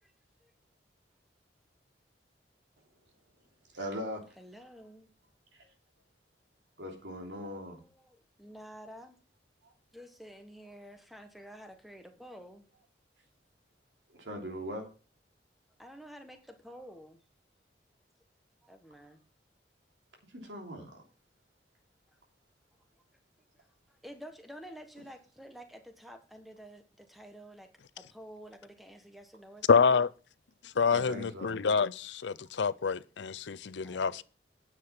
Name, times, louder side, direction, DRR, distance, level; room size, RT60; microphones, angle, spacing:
voice 1, 3.7-4.2 5.5-5.7 6.8-7.8 9.6-9.7 14.1-14.8 20.3-21.0 30.9-31.6, equal, 90° right, 3.2 m, -40 dB
voice 2, 4.4-5.1 7.7-9.2 9.9-12.7 15.8-17.2 18.6-19.2 22.7-22.8 23.6-23.7 24.0-30.0 33.8-34.2, equal, ahead, 1.4 m, -50 dB
voice 3, 29.7-30.1 30.6-34.2, left 5 dB, 80° left, 0.5 m, -27 dB
9.6 x 7.6 x 5.8 m
head